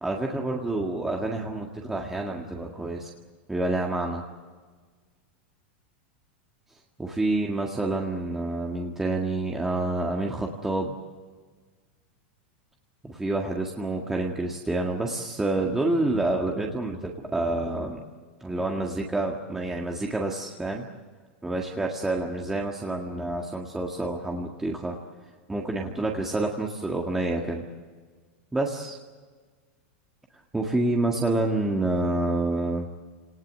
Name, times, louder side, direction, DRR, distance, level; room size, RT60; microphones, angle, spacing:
voice 1, 0.0-3.1 3.5-4.2 7.0-11.0 13.0-18.0 18.4-20.9 21.4-25.0 25.5-27.6 28.5-29.0 30.5-32.9, right 2 dB, 5° right, 0 dB, 1.8 m, -28 dB
28.0 x 19.0 x 7.7 m, 1.5 s
supercardioid pair, 145°, 6 cm